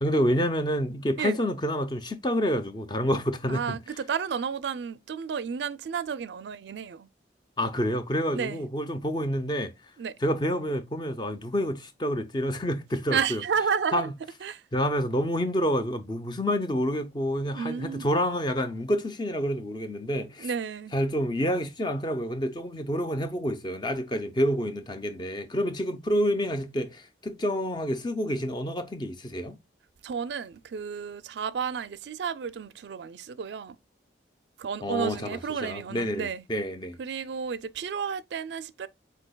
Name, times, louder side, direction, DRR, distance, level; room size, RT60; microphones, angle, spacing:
voice 1, 0.0-3.8 7.6-9.7 10.2-13.4 13.9-14.1 14.7-20.5 20.9-29.6 34.8-37.0, equal, 25° left, 0.6 m, -28 dB
voice 2, 3.5-7.1 8.3-8.6 10.0-10.1 13.1-14.1 14.4-14.6 17.5-18.1 20.4-20.9 30.0-33.8 34.6-36.4 37.0-38.9, right 6 dB, 75° right, 0.4 m, -32 dB
8.1 x 2.8 x 2.2 m
head